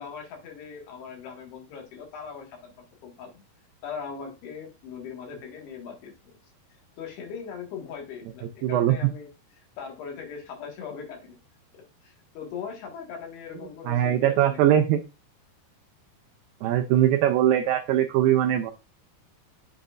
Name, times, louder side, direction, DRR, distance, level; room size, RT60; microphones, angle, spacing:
voice 1, 0.0-3.4 3.8-6.4 6.7-11.4 11.7-14.8, left 6 dB, 75° left, 1 dB, 3.8 m, -40 dB
voice 2, 8.6-9.0 13.9-15.0 16.6-18.7, right 11 dB, 90° right, 6 dB, 2.0 m, -21 dB
8.2 x 5.5 x 2.5 m, 0.27 s
omnidirectional pair, 4.7 m